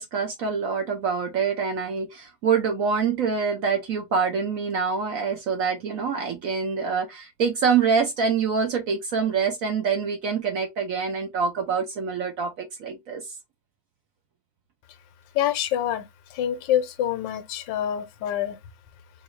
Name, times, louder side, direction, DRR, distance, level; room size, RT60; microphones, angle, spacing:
voice 1, 0.0-13.3, right 6 dB, 60° right, 0.9 m, -25 dB
voice 2, 15.3-16.1 16.3-18.6, left 11 dB, 80° left, 1.3 m, -26 dB
4.0 x 2.6 x 3.0 m
omnidirectional pair, 2.0 m